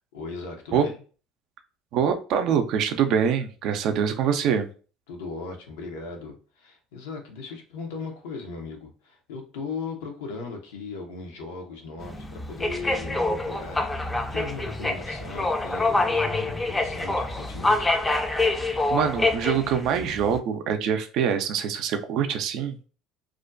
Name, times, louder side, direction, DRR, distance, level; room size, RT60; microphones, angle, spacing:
voice 1, 0.1-0.9 5.1-18.0, left 4 dB, 80° left, 0.6 m, -38 dB
voice 2, 1.9-4.7 18.6-22.8, right 7 dB, 65° right, 0.4 m, -24 dB
sound 1, 12.0-20.4, left 2 dB, 15° left, 0.4 m, -26 dB
2.4 x 2.2 x 2.4 m
hypercardioid pair, 75°, 0 cm